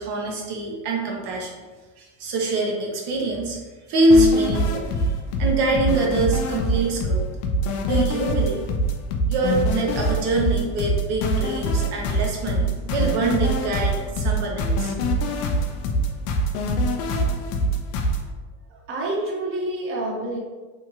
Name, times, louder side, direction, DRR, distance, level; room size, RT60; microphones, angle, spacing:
voice 1, 0.0-1.6 2.0-3.6 3.9-5.0 5.4-7.3 7.9-8.7 9.3-14.9, right 1 dB, 60° right, -1 dB, 0.8 m, -24 dB
sound 1, 4.1-18.2, right 1 dB, 90° left, 0.6 m, -24 dB
voice 2, 18.7-20.4, right 2 dB, 30° right, -2 dB, 0.7 m, -28 dB
2.7 x 2.4 x 2.9 m, 1.3 s
supercardioid pair, 105°, 45 cm